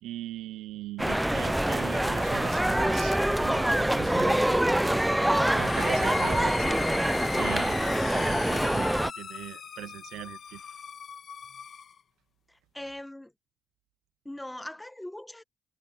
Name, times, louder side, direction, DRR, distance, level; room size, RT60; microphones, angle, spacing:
voice 1, 0.0-6.8 7.2-10.6, right 14 dB, 85° right, 0.5 m, -40 dB
sound 1, 1.0-9.1, right 1 dB, 5° right, 0.4 m, -25 dB
sound 2, 5.4-12.0, left 7 dB, 60° left, 1.6 m, -38 dB
voice 2, 12.5-13.3 14.2-15.4, left 1 dB, 10° left, 1.4 m, -41 dB
supercardioid pair, 60°, 0 cm